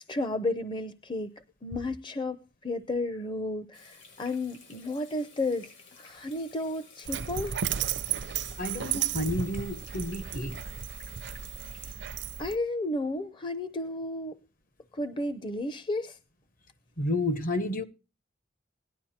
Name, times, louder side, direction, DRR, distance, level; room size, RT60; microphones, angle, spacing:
voice 1, 0.0-1.3 1.6-7.5 11.7-11.9 12.4-14.4 14.9-16.2, left 2 dB, 25° left, 0.7 m, -33 dB
Water tap faucet / Sink (filling or washing), 3.7-11.9, left 4 dB, 75° left, 7.3 m, -53 dB
Dog, 7.1-12.6, right 9 dB, 65° right, 0.6 m, -34 dB
voice 2, 8.6-10.6 17.0-17.8, left 1 dB, 50° left, 1.2 m, -30 dB
18.0 x 11.0 x 4.3 m
head